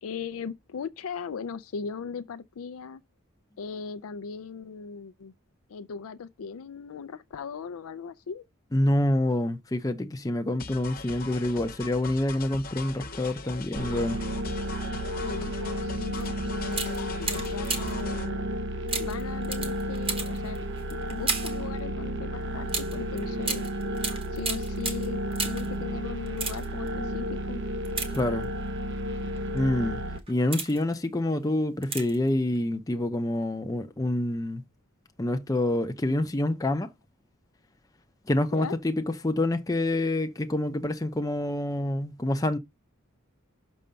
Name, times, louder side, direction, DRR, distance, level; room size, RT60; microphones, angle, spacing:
voice 1, 0.0-3.0 3.6-5.3 5.7-8.4 15.2-18.5 19.0-23.7 24.3-25.2 25.4-27.6 38.5-38.8, left 5 dB, 75° left, 0.4 m, -38 dB
voice 2, 8.7-14.2 28.1-28.5 29.5-30.0 30.3-34.6 35.2-36.9 38.3-42.6, left 1 dB, 15° left, 0.6 m, -27 dB
sound 1, 10.6-18.3, left 4 dB, 45° left, 0.9 m, -40 dB
sound 2, 13.8-30.2, right 1 dB, 60° right, 0.9 m, -32 dB
sound 3, 16.1-16.3 16.7-18.1 18.9-21.7 22.7-25.8 26.2-26.9 27.8-28.7 29.4-29.6 30.1-30.9 31.8-32.3 32.5-32.6, right 4 dB, 25° right, 1.2 m, -34 dB
6.3 x 5.2 x 5.6 m
head